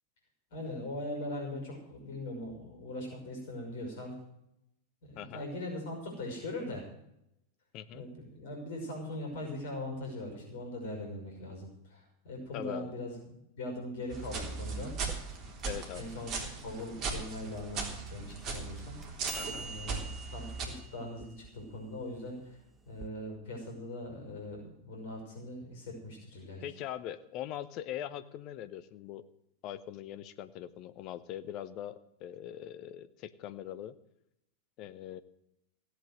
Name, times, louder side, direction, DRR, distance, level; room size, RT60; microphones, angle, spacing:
voice 1, 0.5-4.2 5.0-6.9 7.9-13.2 13.6-15.0 15.9-19.2 19.6-20.0 20.3-22.6 22.9-26.6, left 1 dB, 55° left, 2 dB, 5.7 m, -41 dB
voice 2, 5.2-5.5 7.7-8.1 12.5-12.9 15.6-16.1 19.3-19.7 26.6-29.3 29.6-33.9 34.8-35.2, left 11 dB, 40° left, 13 dB, 0.9 m, -41 dB
sound 1, 14.1-20.7, right 4 dB, 35° right, 3.6 m, -38 dB
sound 2, 14.9-23.1, right 4 dB, 10° right, 1.2 m, -49 dB
16.5 x 8.2 x 7.7 m, 0.81 s
figure-of-eight pair, 90°, 0 cm